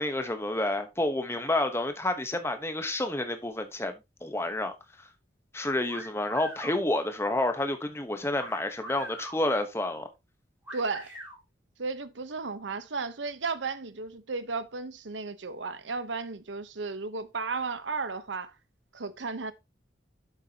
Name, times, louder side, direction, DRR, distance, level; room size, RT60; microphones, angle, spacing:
voice 1, 0.0-3.9 4.2-5.1 5.5-10.1, left 1 dB, 15° left, 1.0 m, -29 dB
sound 1, 5.9-6.8 8.4-9.4 10.7-11.4, equal, 5° right, 4.7 m, -42 dB
voice 2, 10.7-11.1 11.8-18.5 18.9-19.5, right 4 dB, 85° right, 1.0 m, -34 dB
9.2 x 7.3 x 2.9 m
head